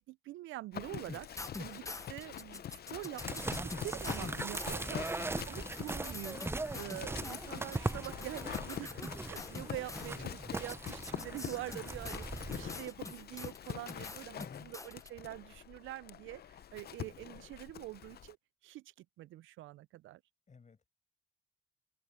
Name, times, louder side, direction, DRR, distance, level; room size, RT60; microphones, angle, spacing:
voice 1, 0.0-5.1 5.4-18.4 18.6-20.2, right 16 dB, 80° right, 0.4 m, -45 dB
Livestock farm animals working animals, 0.7-18.3, left 10 dB, 50° left, 0.7 m, -45 dB
sound 1, 1.1-10.1 10.7-15.1, left 3 dB, 15° left, 0.8 m, -46 dB
sound 2, 3.2-12.8, right 2 dB, 10° right, 0.6 m, -40 dB
voice 2, 4.8-5.5 10.0-10.4 14.4-14.8 20.5-20.9, left 5 dB, 35° left, 6.0 m, -53 dB
open air
cardioid pair, 90°, 20 cm